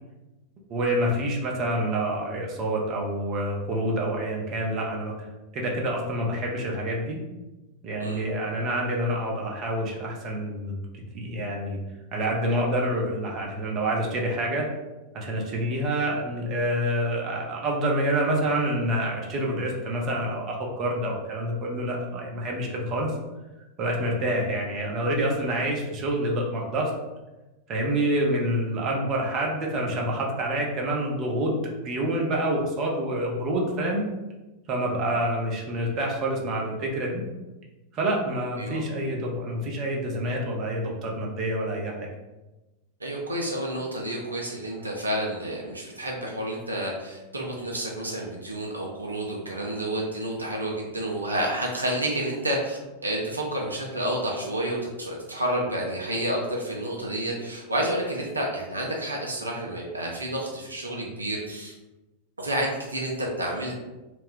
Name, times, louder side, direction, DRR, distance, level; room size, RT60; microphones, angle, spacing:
voice 1, 0.7-5.1 5.5-7.2 7.8-11.8 12.1-14.7 15.1-23.1 23.8-26.9 27.7-34.0 34.7-37.2 37.9-42.1, right 1 dB, 35° right, -1 dB, 0.6 m, -27 dB
voice 2, 43.0-61.7 62.4-63.7, right 1 dB, 80° right, -2 dB, 0.4 m, -30 dB
2.4 x 2.2 x 3.6 m, 1.1 s
figure-of-eight pair, 90°, 0 cm